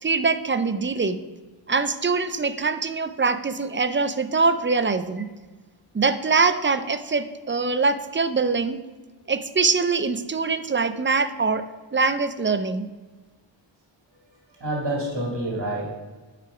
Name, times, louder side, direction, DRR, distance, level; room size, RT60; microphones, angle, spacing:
voice 1, 0.0-1.2 1.7-5.3 5.9-8.8 9.3-11.6 11.9-12.9, right 4 dB, 25° right, 11 dB, 0.5 m, -23 dB
voice 2, 14.5-15.9, right 1 dB, 50° right, -1 dB, 2.1 m, -28 dB
9.0 x 5.0 x 4.9 m, 1.3 s
wide cardioid pair, 85°, 47 cm